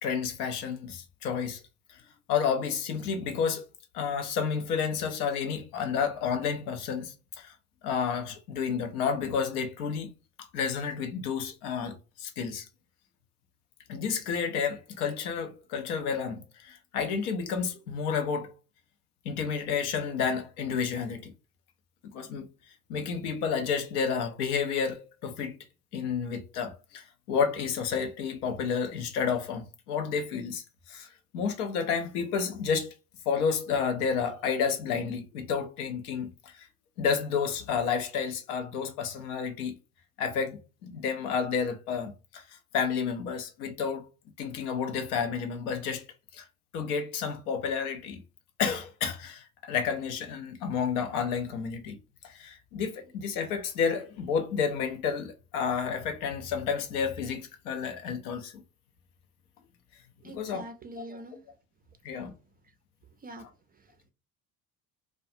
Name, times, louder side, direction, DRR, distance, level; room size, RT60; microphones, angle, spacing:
voice 1, 0.0-1.6 1.9-2.0 2.3-3.7 3.9-7.5 7.8-10.1 10.5-12.7 13.9-18.5 19.2-21.3 22.1-22.5 22.9-25.6 25.9-32.9 33.3-36.7 37.0-39.7 40.2-44.1 44.4-46.1 46.3-46.5 46.7-48.2 48.6-52.0 52.2-58.5 60.2-60.6 61.0-61.1 62.0-62.3 63.4-63.5, left 6 dB, 80° left, 0.6 m, -31 dB
voice 2, 60.2-61.4 63.2-63.4, right 1 dB, 20° right, 0.3 m, -43 dB
2.3 x 2.2 x 2.6 m
hypercardioid pair, 60°, 44 cm